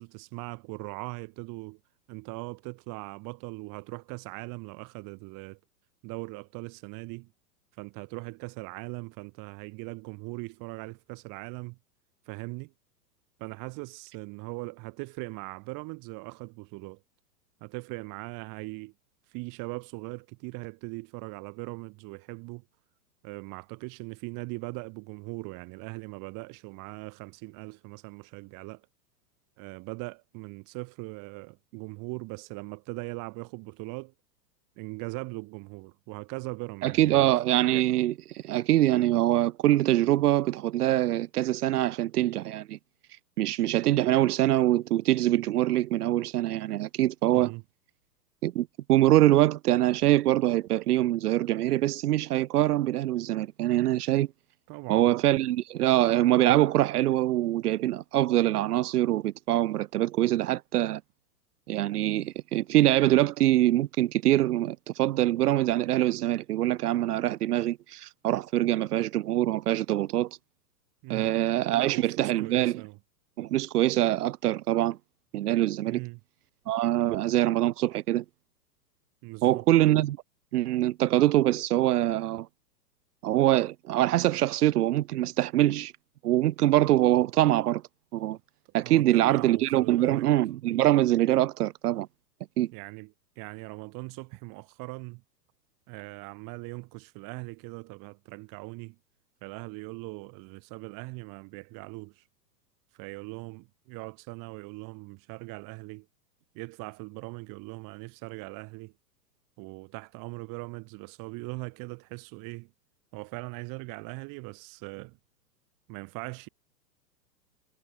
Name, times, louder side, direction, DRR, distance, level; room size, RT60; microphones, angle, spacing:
voice 1, 0.0-1.8 2.1-5.6 6.0-7.3 7.8-11.8 12.3-12.7 13.4-17.0 17.6-18.9 19.3-22.6 23.2-28.9 29.6-34.1 34.8-37.3 47.3-47.6 54.7-55.1 71.0-71.3 71.7-73.0 75.8-76.2 79.2-79.6 88.8-90.3 92.7-95.2 95.9-99.0 99.4-102.2 102.9-106.1 106.5-108.9 109.6-112.7 113.1-115.2 115.9-116.5, right 28 dB, 40° right, 4.0 m, -40 dB
voice 2, 36.8-42.8 43.4-47.5 48.4-54.3 54.9-61.0 61.7-70.3 71.1-72.8 73.4-75.0 75.3-76.0 76.7-78.2 79.4-80.2 80.5-82.5 83.2-85.9 86.2-87.8 88.1-88.4 88.7-92.1 92.6-92.7, right 14 dB, 65° right, 1.5 m, -24 dB
hypercardioid pair, 125°, 50 cm